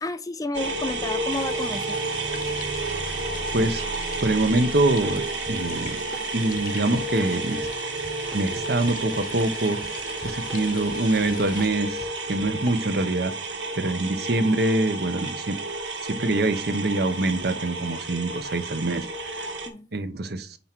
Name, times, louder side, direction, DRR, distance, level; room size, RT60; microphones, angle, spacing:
voice 1, 0.0-2.0 19.7-19.9, left 2 dB, 20° left, 0.4 m, -31 dB
sound 1, 0.5-19.7, right 3 dB, 80° right, 1.4 m, -31 dB
sound 2, 1.3-11.7, left 7 dB, 45° left, 0.8 m, -42 dB
voice 2, 4.2-6.0 6.3-7.7 8.3-9.8 10.2-13.3 13.8-15.6 16.0-19.5 19.9-20.6, right 2 dB, 60° right, 0.9 m, -25 dB
Drum kit / Drum, 4.5-13.1, equal, 5° left, 0.9 m, -44 dB
5.4 x 4.4 x 6.0 m
head